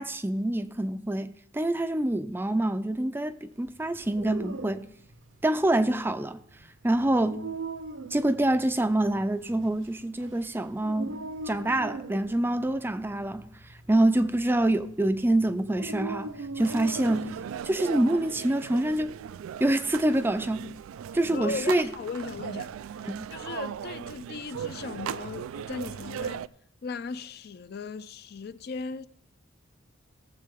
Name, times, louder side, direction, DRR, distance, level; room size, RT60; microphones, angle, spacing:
voice 1, 0.0-4.9 5.4-6.4 6.8-7.4 8.1-11.1 11.5-13.5 13.9-17.4 17.6-19.2 19.6-20.7 21.1-21.9 23.0-23.3, right 1 dB, 10° right, 0.4 m, -26 dB
Dog, 3.9-17.7, right 3 dB, 65° right, 0.7 m, -40 dB
sound 1, 16.6-26.5, right 8 dB, 90° right, 0.3 m, -38 dB
voice 2, 21.3-26.5 26.8-29.1, left 4 dB, 50° left, 0.4 m, -37 dB
18.5 x 7.6 x 3.6 m
head